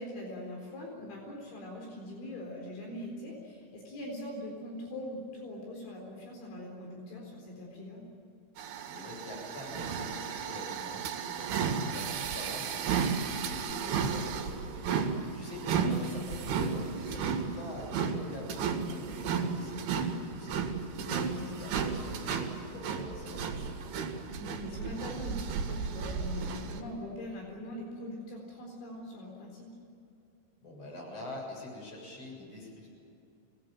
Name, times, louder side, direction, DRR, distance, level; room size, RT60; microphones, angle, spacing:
voice 1, 0.0-8.0 15.6-16.0 21.0-21.9 24.3-29.7, left 1 dB, 70° left, 0 dB, 6.4 m, -42 dB
sound 1, 8.6-26.8, right 6 dB, 85° right, 4.6 m, -34 dB
voice 2, 8.8-20.6 21.1-23.8 30.6-32.9, left 2 dB, 30° left, -1 dB, 8.0 m, -45 dB
26.0 x 19.5 x 9.1 m, 2.7 s
omnidirectional pair, 5.5 m